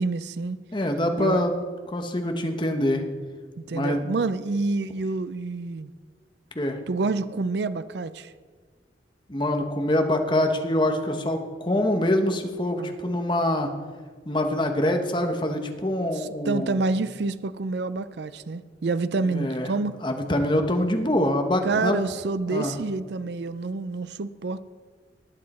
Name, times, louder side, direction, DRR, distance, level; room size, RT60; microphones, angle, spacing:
voice 1, 0.0-0.6 1.2-1.4 3.7-5.9 6.9-8.3 12.8-13.0 16.1-20.0 21.6-24.6, right 3 dB, 70° right, 14 dB, 0.5 m, -28 dB
voice 2, 0.7-1.6 1.9-3.0 3.7-4.0 6.5-6.8 9.3-13.7 14.2-16.8 19.3-22.0 22.5-22.7, left 1 dB, 25° left, 5 dB, 1.1 m, -25 dB
19.5 x 7.6 x 4.3 m, 1.5 s
head